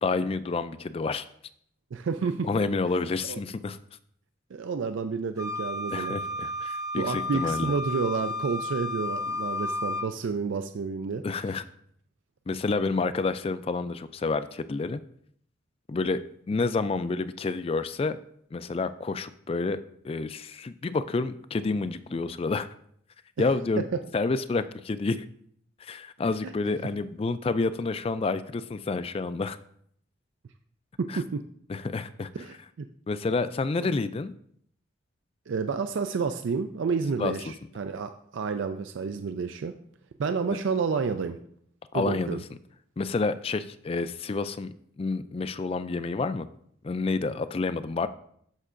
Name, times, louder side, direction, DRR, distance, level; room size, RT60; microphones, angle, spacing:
voice 1, 0.0-1.3 2.4-3.8 5.9-7.7 11.2-11.7 12.5-15.0 15.9-16.2 16.5-18.2 18.5-19.8 20.0-22.7 23.4-23.9 24.1-25.2 25.8-29.6 31.1-31.2 31.7-32.3 33.1-34.3 37.2-37.3 41.9-42.4 43.0-46.5 46.8-48.1, left 3 dB, 30° left, 13 dB, 0.3 m, -29 dB
voice 2, 1.9-2.5 3.3-3.4 4.5-6.2 7.0-11.2 23.8-24.0 26.4-26.5 31.0-31.4 32.3-32.9 33.8-33.9 35.5-39.7 40.2-41.4 41.9-42.4, right 5 dB, 75° right, 8 dB, 0.4 m, -30 dB
Wind instrument woodwind instrument, 5.4-10.1, left 2 dB, 15° right, 0.6 m, -32 dB
13.0 x 5.5 x 2.5 m, 0.67 s
head